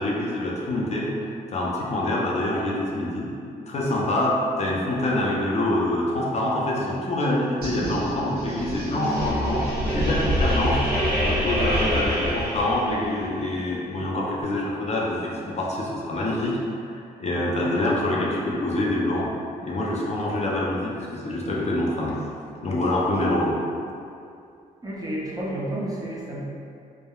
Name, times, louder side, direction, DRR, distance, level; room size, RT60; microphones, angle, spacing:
voice 1, 0.0-3.3 3.7-10.8 11.2-16.5 16.9-19.3 19.6-22.2 22.6-23.6, left 1 dB, 40° left, -4 dB, 0.5 m, -26 dB
sound 1, 7.6-13.2, equal, 60° right, 1.3 m, -25 dB
voice 2, 24.8-26.4, right 1 dB, 20° right, -6 dB, 0.6 m, -30 dB
3.4 x 2.1 x 2.2 m, 2.5 s
cardioid pair, 70°, 17 cm